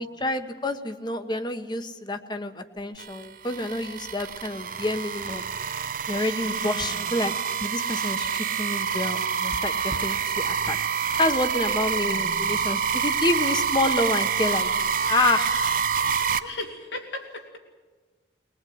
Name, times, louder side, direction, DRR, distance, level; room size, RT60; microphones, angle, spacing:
voice 1, 0.0-5.4 6.1-7.3 7.6-15.8, left 2 dB, 25° left, 9 dB, 1.1 m, -28 dB
sound 1, 3.0-16.4, right 6 dB, 45° right, 0.9 m, -27 dB
voice 2, 6.4-7.1 12.0-12.5 16.4-17.6, left 2 dB, 75° left, 3 dB, 3.2 m, -37 dB
21.5 x 19.5 x 9.4 m, 1.3 s
head